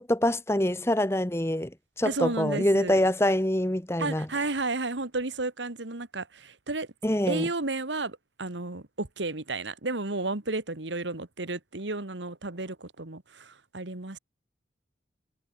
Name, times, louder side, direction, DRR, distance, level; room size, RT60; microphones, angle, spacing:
voice 1, 0.0-1.7 2.0-4.3 7.0-7.5, left 1 dB, 15° left, 1.2 m, -25 dB
voice 2, 2.1-3.0 4.0-6.9 7.3-14.2, right 2 dB, 90° right, 2.1 m, -32 dB
head